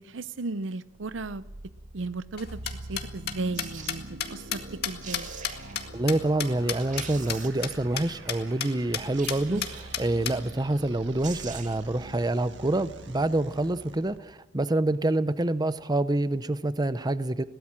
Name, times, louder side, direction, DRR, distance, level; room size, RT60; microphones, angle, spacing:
voice 1, 0.0-1.4 1.9-2.6 2.9-5.3 9.5-9.7, right 3 dB, 85° right, 16 dB, 0.7 m, -35 dB
sound 1, 0.9-14.2, right 1 dB, 70° right, 1.5 m, -44 dB
sound 2, 2.4-7.0 7.3-7.4 7.6-7.7 8.0-8.1 8.3-8.7 8.9-9.0 9.3-10.3, left 9 dB, 60° left, 2.0 m, -31 dB
sound 3, 3.5-4.0 4.7-4.8 5.0-5.8 6.4-6.5 6.8-7.8 9.1-10.0 10.9-11.0 11.2-11.9 12.2-12.3, right 7 dB, 45° right, 2.0 m, -43 dB
voice 2, 5.9-17.4, right 2 dB, 20° right, 14 dB, 0.6 m, -27 dB
22.0 x 17.5 x 7.5 m, 1.0 s
head